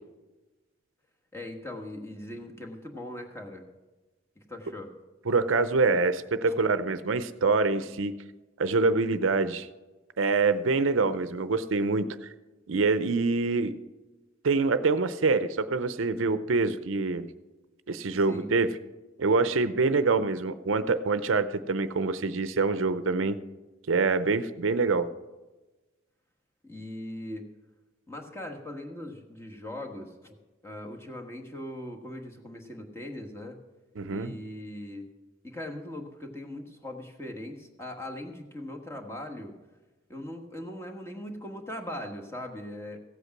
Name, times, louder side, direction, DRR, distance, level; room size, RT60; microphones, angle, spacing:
voice 1, 1.3-3.7 4.4-4.9 6.4-6.6 18.3-18.5 26.6-27.5 28.1-30.4 30.6-33.6 34.1-35.1 35.4-39.5 40.1-43.0, left 1 dB, 15° left, 2 dB, 1.4 m, -40 dB
voice 2, 5.3-8.2 8.6-9.7 10.2-12.3 12.7-13.7 14.4-17.3 17.9-18.7 19.2-23.4 23.9-25.1 34.0-34.3, right 3 dB, 75° right, 12 dB, 0.6 m, -25 dB
15.5 x 8.2 x 5.9 m, 1.2 s
head